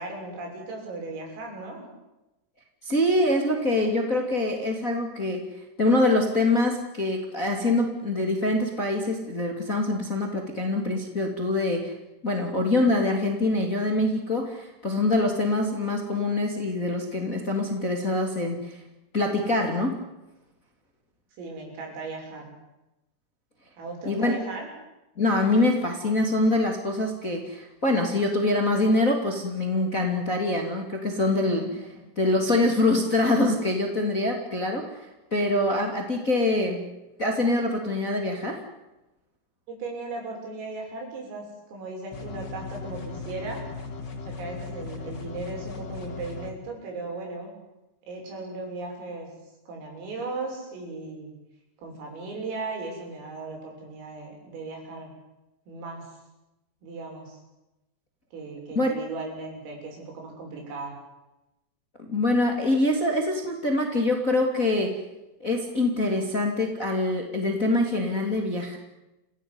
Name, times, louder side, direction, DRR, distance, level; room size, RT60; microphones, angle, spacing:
voice 1, 0.0-1.9 21.4-22.4 23.8-24.7 31.6-31.7 39.7-43.6 44.2-47.5 48.1-49.3 49.7-51.3 51.8-55.1 55.7-56.0 56.8-57.4 58.3-61.0, right 3 dB, 85° right, 1 dB, 9.5 m, -37 dB
voice 2, 2.8-5.4 5.8-11.9 12.2-18.8 19.1-20.0 24.0-24.4 25.2-31.7 32.2-36.8 37.2-38.6 58.7-59.0 62.0-64.9 65.4-68.8, left 2 dB, 20° left, 3 dB, 2.4 m, -24 dB
sound 1, 42.1-46.5, left 4 dB, 40° left, 1.5 m, -37 dB
28.0 x 16.5 x 9.7 m, 0.97 s
omnidirectional pair, 5.8 m